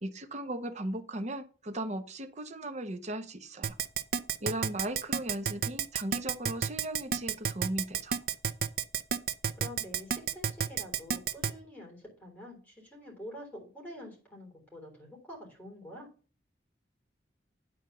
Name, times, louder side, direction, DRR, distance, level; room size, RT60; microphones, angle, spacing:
voice 1, 0.0-3.8 4.4-8.1, right 1 dB, 40° right, 8 dB, 1.0 m, -37 dB
Keyboard (musical), 3.6-11.5, right 7 dB, 55° right, 0.6 m, -30 dB
voice 2, 9.6-16.1, equal, 10° left, -1 dB, 3.7 m, -47 dB
9.4 x 4.5 x 6.7 m, 0.36 s
head